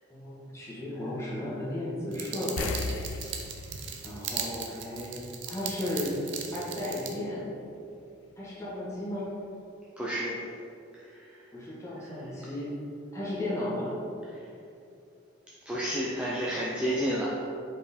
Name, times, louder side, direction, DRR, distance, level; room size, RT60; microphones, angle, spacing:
voice 1, 0.1-2.8 4.0-5.2 5.5-6.2 6.5-7.5 8.4-9.3 11.5-12.7 13.1-13.9, left 1 dB, 15° left, -8 dB, 1.4 m, -34 dB
sound 1, 2.1-7.1, right 7 dB, 70° right, 0.6 m, -38 dB
sound 2, 2.6-5.4 5.7-5.8 8.7-8.8 9.2-9.3, left 4 dB, 85° left, 0.3 m, -37 dB
voice 2, 10.0-10.4 11.0-11.4 15.7-17.5, equal, 5° right, -6 dB, 0.5 m, -31 dB
5.3 x 4.6 x 4.2 m, 2.7 s
head